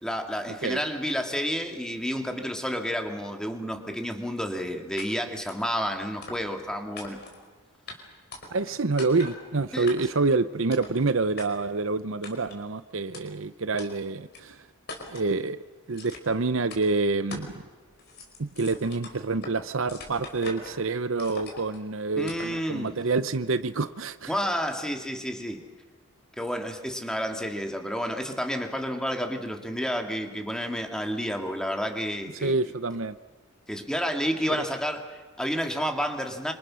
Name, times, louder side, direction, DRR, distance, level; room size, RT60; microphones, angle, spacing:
voice 1, 0.0-7.2 9.7-9.9 22.2-22.9 24.3-25.6 26.4-32.6 33.7-36.5, equal, 5° left, 4 dB, 2.3 m, -30 dB
sound 1, 5.0-5.1 5.5-5.7 6.2-6.6 7.0-7.4 7.9-8.0 8.3-8.7 9.0-9.4 9.9-10.2 10.7-11.0 11.4-11.5 12.2-12.6 13.1-13.2 13.8-13.9 14.3-14.4 14.9-15.3 15.9-16.4 16.7-16.8 17.3-17.6 17.9-19.6 19.9-20.8 21.2-21.8 22.3-22.6, left 2 dB, 50° left, 4.9 m, -41 dB
voice 2, 8.5-14.6 15.1-15.6 15.9-17.6 18.4-24.3 32.4-33.2, right 3 dB, 65° right, 13 dB, 0.8 m, -27 dB
27.0 x 26.5 x 6.4 m, 1.3 s
head